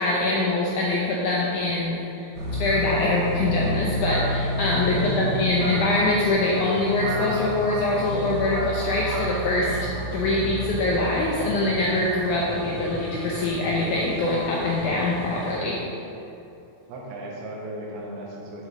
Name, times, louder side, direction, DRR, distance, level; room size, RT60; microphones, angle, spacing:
voice 1, 0.0-2.3 2.6-9.8 10.1-15.9, left 2 dB, 80° left, -4 dB, 1.8 m, -24 dB
sound 1, 2.3-15.6, equal, 55° right, 1.9 m, -31 dB
voice 2, 5.0-5.4 10.3-10.6 12.5-12.7 16.9-18.7, right 2 dB, 85° right, -2 dB, 3.1 m, -35 dB
8.8 x 6.6 x 3.6 m, 2.9 s
omnidirectional pair, 4.4 m